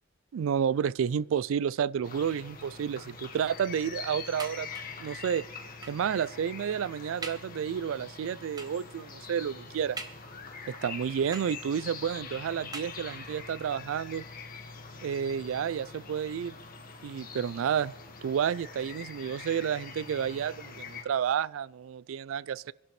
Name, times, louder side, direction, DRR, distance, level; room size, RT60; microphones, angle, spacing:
voice 1, 0.3-4.7 5.0-5.4 5.9-10.0 10.7-14.2 15.0-16.6 17.0-17.9 18.2-22.7, right 8 dB, 75° right, 0.3 m, -30 dB
sound 1, 2.0-21.0, left 4 dB, 45° left, 1.7 m, -44 dB
sound 2, 4.4-5.1 5.8-6.1 6.7-6.8 7.2-7.6 8.6-8.9 10.0-10.6 11.3-11.9 12.7-13.4 14.2-14.3 14.6-14.7, right 3 dB, 20° right, 1.0 m, -44 dB
23.5 x 11.5 x 3.2 m
head